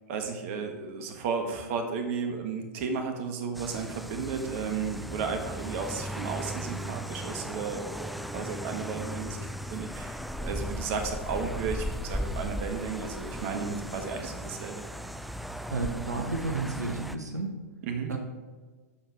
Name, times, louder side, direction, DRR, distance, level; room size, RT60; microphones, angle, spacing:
voice 1, 0.1-14.8 17.8-18.2, right 5 dB, 50° right, 5 dB, 1.3 m, -34 dB
sound 1, 3.5-17.2, equal, ahead, 0.4 m, -37 dB
voice 2, 15.7-17.5 18.1-18.2, right 3 dB, 80° right, 4 dB, 1.2 m, -31 dB
13.0 x 4.6 x 4.8 m, 1.4 s
figure-of-eight pair, 100°, 9 cm